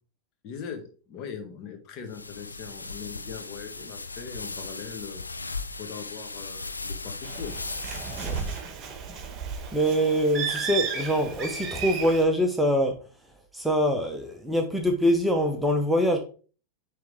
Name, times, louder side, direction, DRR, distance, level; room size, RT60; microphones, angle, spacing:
voice 1, 0.4-5.2 5.8-7.5, left 6 dB, 40° left, 4 dB, 1.5 m, -40 dB
sound 1, 2.1-8.6, left 3 dB, 80° left, 0.5 m, -37 dB
Bird, 7.2-12.2, right 6 dB, 30° right, 1.4 m, -33 dB
voice 2, 9.7-13.0 13.5-16.2, equal, 5° right, 4 dB, 0.9 m, -24 dB
9.5 x 3.5 x 3.5 m, 0.38 s
figure-of-eight pair, 90°, 0 cm